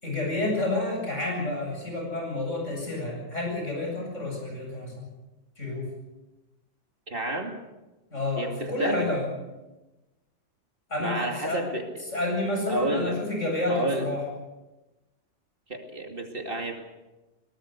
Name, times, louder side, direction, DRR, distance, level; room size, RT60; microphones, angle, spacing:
voice 1, 0.0-5.0 5.6-5.9 8.1-9.3 10.9-11.6 12.1-14.2, left 2 dB, 75° left, 0 dB, 8.6 m, -29 dB
voice 2, 7.1-7.5 8.4-9.1 11.0-11.8 12.7-13.2 13.7-14.1 15.7-16.8, right 1 dB, 45° right, 4 dB, 2.7 m, -30 dB
22.5 x 19.0 x 6.8 m, 1.1 s
omnidirectional pair, 1.3 m